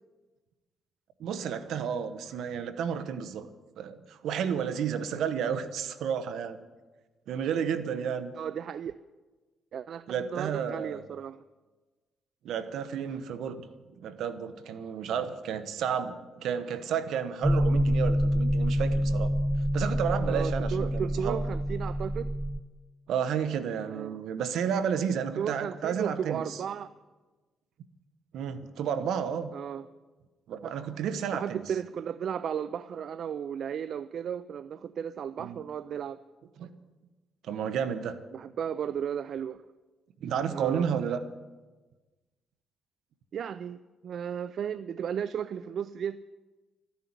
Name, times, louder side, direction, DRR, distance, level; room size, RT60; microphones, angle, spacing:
voice 1, 1.2-3.5 3.8-6.6 7.3-8.3 10.1-11.0 12.4-13.6 14.0-19.3 19.7-21.4 23.1-26.6 28.3-29.5 30.5-31.6 35.4-35.6 36.6-36.7 37.4-38.2 40.2-41.2, right 7 dB, 80° right, 12 dB, 1.2 m, -31 dB
voice 2, 8.3-9.0 9.7-11.4 20.3-22.3 23.9-24.2 25.4-26.9 29.5-29.9 30.5-30.7 31.3-36.2 38.3-39.6 40.5-40.9 43.3-46.2, right 8 dB, 60° right, 15 dB, 0.4 m, -34 dB
sound 1, 17.4-22.6, equal, 5° right, 0.5 m, -27 dB
13.0 x 10.5 x 9.7 m, 1.3 s
cardioid pair, 85°, 0 cm